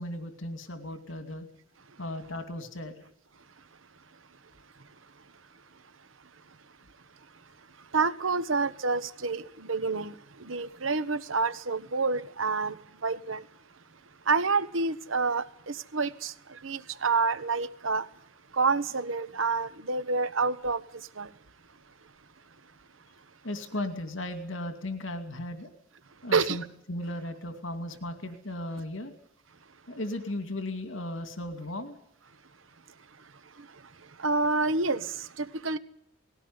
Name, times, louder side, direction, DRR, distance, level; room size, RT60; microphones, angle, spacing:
voice 1, 0.0-1.5 2.0-3.0 23.4-25.7 26.2-26.6 26.9-29.1 29.9-32.0, left 1 dB, 75° left, 2.5 m, -36 dB
voice 2, 4.7-13.5 13.7-21.4 22.0-22.1 23.2-23.3 26.2-26.6 33.0-35.8, right 4 dB, 85° right, 1.2 m, -30 dB
19.5 x 16.5 x 9.7 m
head